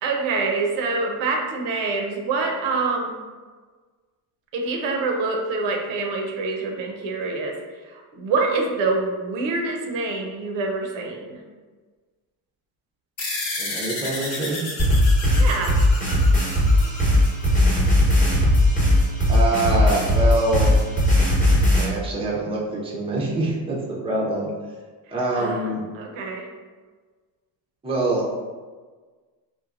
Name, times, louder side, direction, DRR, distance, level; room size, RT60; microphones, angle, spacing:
voice 1, 0.0-3.1 4.5-7.5 7.9-11.4 15.4-15.8 25.4-26.5, right 3 dB, 75° right, 2 dB, 0.6 m, -26 dB
sound 1, 13.2-18.0, left 2 dB, 55° left, 0.8 m, -32 dB
voice 2, 13.6-14.7 19.3-20.8 21.7-24.5 25.1-25.8 27.8-28.2, right 2 dB, 10° right, -3 dB, 0.5 m, -25 dB
sound 2, 14.8-21.8, left 1 dB, 15° left, 0.9 m, -18 dB
3.2 x 2.1 x 2.4 m, 1.4 s
cardioid pair, 95°, 46 cm